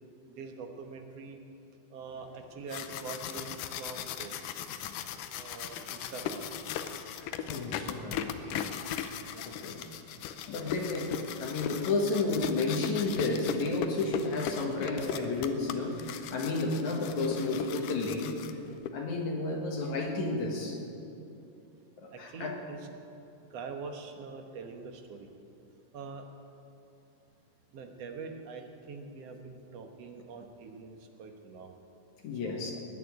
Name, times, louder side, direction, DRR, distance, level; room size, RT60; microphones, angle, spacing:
voice 1, 0.4-1.4 1.9-4.6 5.3-6.5 9.3-9.4 22.1-22.9 23.5-25.3 25.9-26.2 27.7-31.7 32.4-32.6, right 4 dB, 60° right, 4 dB, 2.1 m, -44 dB
sound 1, 2.5-18.9, left 8 dB, 90° left, 2.3 m, -38 dB
voice 2, 7.1-8.7 9.0-9.8 10.5-18.4 18.9-20.8 22.0-22.5 32.2-32.7, left 3 dB, 65° left, 0 dB, 2.8 m, -32 dB
20.5 x 6.9 x 9.6 m, 2.7 s
omnidirectional pair, 3.7 m